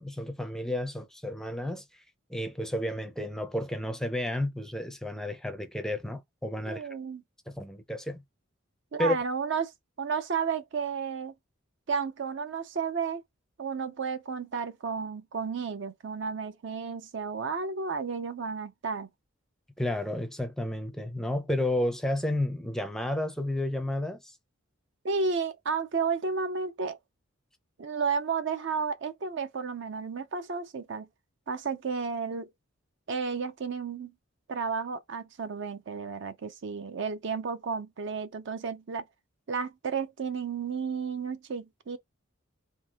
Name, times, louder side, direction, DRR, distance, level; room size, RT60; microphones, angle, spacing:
voice 1, 0.0-1.8 2.3-6.9 7.5-8.2 9.0-9.2 19.8-24.3, left 1 dB, 5° left, 0.5 m, -31 dB
voice 2, 6.6-7.2 8.9-9.7 10.0-11.3 11.9-13.2 13.6-19.1 25.0-27.0 27.8-31.1 31.5-32.5 33.1-34.1 34.5-39.0 39.5-42.0, right 5 dB, 60° right, 0.5 m, -32 dB
3.7 x 2.8 x 2.8 m
head